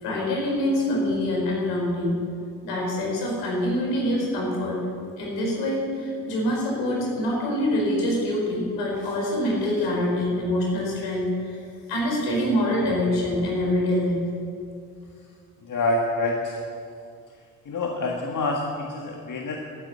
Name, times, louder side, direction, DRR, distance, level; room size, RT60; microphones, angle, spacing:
voice 1, 0.0-2.1 2.6-4.8 5.2-11.6 11.9-14.3, left 1 dB, 75° left, -2 dB, 4.7 m, -25 dB
voice 2, 15.6-16.6 17.7-19.6, left 2 dB, 45° left, 0 dB, 1.8 m, -27 dB
12.5 x 9.7 x 8.7 m, 2.3 s
hypercardioid pair, 45°, 43 cm